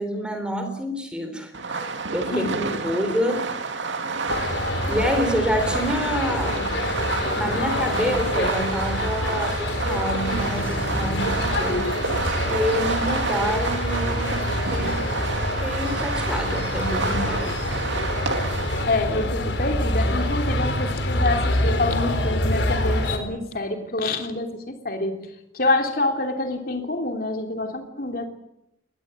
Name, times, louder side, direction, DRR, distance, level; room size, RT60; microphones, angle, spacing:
voice 1, 0.0-1.5 1.8-3.5 3.8-4.0 4.9-6.7 7.4-11.8 12.1-15.3 15.6-17.5, equal, 5° right, 7 dB, 3.5 m, -28 dB
Fireworks, 1.5-18.8, right 4 dB, 80° right, 2.3 m, -29 dB
voice 2, 2.3-2.8 18.9-25.3 25.5-28.3, left 2 dB, 50° left, 4 dB, 3.3 m, -27 dB
sound 1, 4.3-23.2, left 1 dB, 75° left, 4.5 m, -26 dB
22.0 x 19.5 x 9.1 m, 0.81 s
head